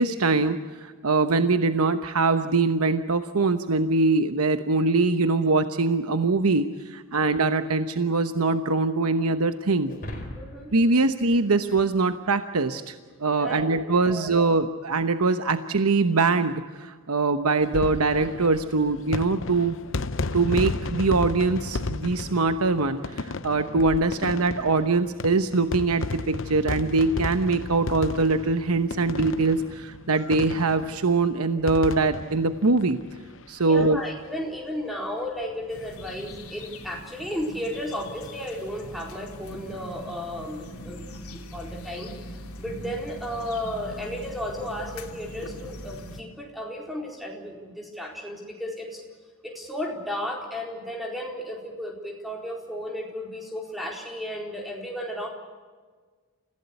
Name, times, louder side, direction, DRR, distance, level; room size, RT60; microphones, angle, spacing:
voice 1, 0.0-9.9 10.7-19.8 20.3-33.0 33.5-34.0, right 3 dB, 90° right, 9 dB, 1.0 m, -23 dB
sound 1, 9.9-12.4, left 1 dB, 40° left, 4.6 m, -40 dB
voice 2, 10.3-10.7 13.3-13.8 14.1-14.3 33.6-42.1 42.6-49.0 49.4-55.3, equal, ahead, 0 dB, 4.4 m, -34 dB
sound 2, 17.6-33.6 33.9-34.0 34.2-34.3 35.6-35.9, left 3 dB, 60° left, 0.8 m, -34 dB
sound 3, 35.7-46.2, equal, 90° left, 2.9 m, -41 dB
29.5 x 16.5 x 8.4 m, 1.5 s
head